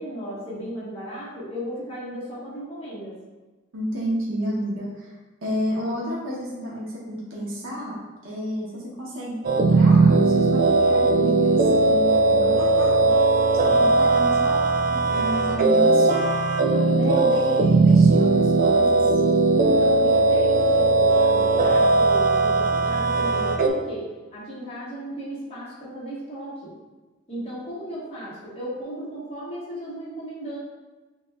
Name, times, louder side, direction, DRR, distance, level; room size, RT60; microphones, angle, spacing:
voice 1, 0.0-3.1 15.0-15.5 15.7-16.0 16.7-17.3 19.5-24.1 24.3-26.7 27.3-30.6, equal, 30° left, -9 dB, 1.4 m, -35 dB
voice 2, 3.7-13.1 13.6-16.2 16.8-19.0, equal, 80° right, -5 dB, 0.8 m, -31 dB
sound 1, 9.4-23.7, right 3 dB, 45° right, 0.3 m, -18 dB
6.2 x 2.4 x 2.2 m, 1.2 s
head